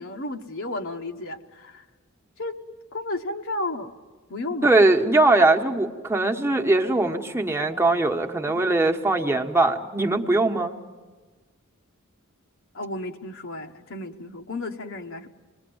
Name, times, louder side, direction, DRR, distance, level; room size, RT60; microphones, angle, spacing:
voice 1, 0.0-1.8 2.4-2.5 2.9-3.9 4.3-4.9 8.5-8.7 12.7-15.3, left 2 dB, 65° left, 3 dB, 1.2 m, -33 dB
voice 2, 4.6-10.7, right 2 dB, 10° right, 2 dB, 1.2 m, -21 dB
27.5 x 21.0 x 7.9 m, 1.4 s
head